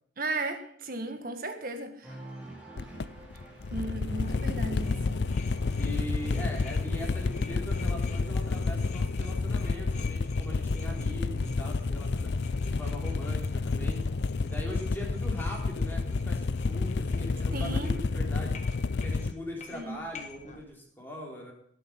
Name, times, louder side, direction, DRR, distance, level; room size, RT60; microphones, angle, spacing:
voice 1, 0.2-2.2 3.7-5.2 17.5-18.0 19.7-20.0, right 2 dB, 45° right, 6 dB, 1.9 m, -35 dB
Cheering, 2.0-9.1, right 1 dB, 5° right, 3.1 m, -51 dB
sound 1, 2.8-19.3, left 3 dB, 60° left, 0.5 m, -30 dB
voice 2, 3.8-4.8 5.8-12.3 12.6-14.0 14.4-18.6 18.9-21.5, left 1 dB, 10° left, -2 dB, 4.0 m, -41 dB
sound 2, 4.1-20.6, left 3 dB, 35° left, 1.4 m, -48 dB
17.5 x 8.1 x 5.6 m, 0.67 s
head